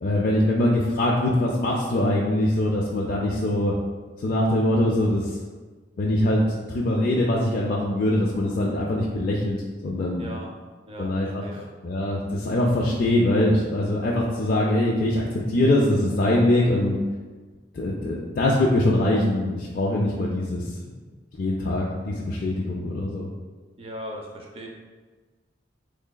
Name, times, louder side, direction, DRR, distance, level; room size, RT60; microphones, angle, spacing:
voice 1, 0.0-3.7 4.2-5.3 6.0-6.4 6.7-9.6 9.8-10.3 11.0-11.4 11.8-17.0 17.7-20.6 21.4-23.3, left 1 dB, 50° left, -3 dB, 0.3 m, -23 dB
voice 2, 10.2-10.5 10.9-11.7 23.8-24.7, equal, 30° right, 0 dB, 0.5 m, -38 dB
3.8 x 3.2 x 2.2 m, 1.4 s
head